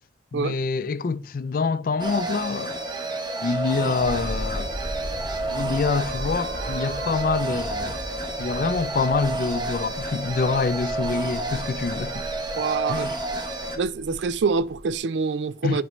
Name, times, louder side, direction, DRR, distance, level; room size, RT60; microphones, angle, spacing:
voice 1, 0.3-2.8 3.4-4.7 5.5-8.0 8.4-12.3 12.9-13.2 15.6-15.8, left 4 dB, 50° left, 0.4 m, -26 dB
sound 1, 2.0-13.8, right 2 dB, 25° right, 1.1 m, -30 dB
sound 2, 4.0-15.0, equal, ahead, 2.2 m, -37 dB
sound 3, 5.6-10.8, right 2 dB, 60° right, 0.9 m, -42 dB
voice 2, 12.6-13.1 13.8-15.8, right 4 dB, 90° right, 0.4 m, -25 dB
11.0 x 5.1 x 3.1 m
head